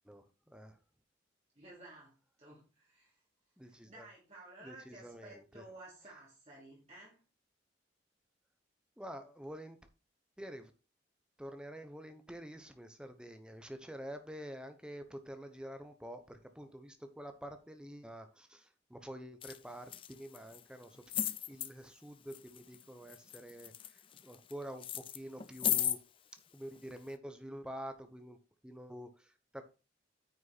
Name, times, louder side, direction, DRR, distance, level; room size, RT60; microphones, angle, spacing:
voice 1, 0.0-0.8 3.6-4.1 4.6-5.6 9.0-9.8 10.4-10.7 11.4-26.0 26.5-28.4 28.6-29.6, equal, 5° right, 7 dB, 1.0 m, -48 dB
voice 2, 1.5-3.2 3.6-7.2, right 2 dB, 35° right, -5 dB, 2.9 m, -54 dB
sound 1, 19.4-19.6 19.9-20.6 21.1-21.7 22.3-22.8 23.1-24.5 24.8-26.0 26.8-26.9, left 10 dB, 30° left, 0.5 m, -35 dB
9.2 x 5.9 x 4.2 m, 0.32 s
head